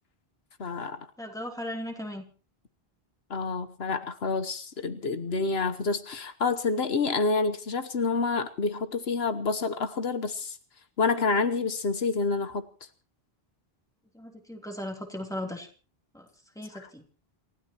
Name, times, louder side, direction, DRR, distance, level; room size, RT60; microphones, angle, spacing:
voice 1, 0.6-1.1 3.3-10.6 11.0-12.9 16.7-16.9, left 4 dB, 80° left, 8 dB, 1.3 m, -28 dB
voice 2, 1.2-2.2 14.1-15.7 16.1-16.3 16.5-17.0, left 1 dB, 5° left, 1 dB, 3.2 m, -37 dB
28.5 x 16.0 x 3.0 m, 0.38 s
omnidirectional pair, 1.0 m